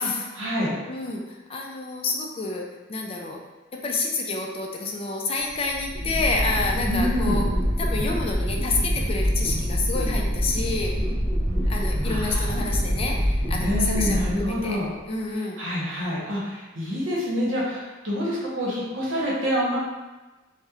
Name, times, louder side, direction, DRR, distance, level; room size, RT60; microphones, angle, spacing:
voice 1, 0.0-0.7 6.9-7.4 12.0-12.5 13.6-14.9 15.6-19.8, equal, 75° right, -6 dB, 0.8 m, -27 dB
voice 2, 0.9-3.4 3.8-7.5 7.8-10.9 11.7-14.8 15.1-15.6, left 3 dB, 30° left, 0 dB, 0.3 m, -29 dB
sound 1, 5.5-15.0, equal, 35° right, 0.5 m, -25 dB
2.9 x 2.0 x 2.3 m, 1.2 s
head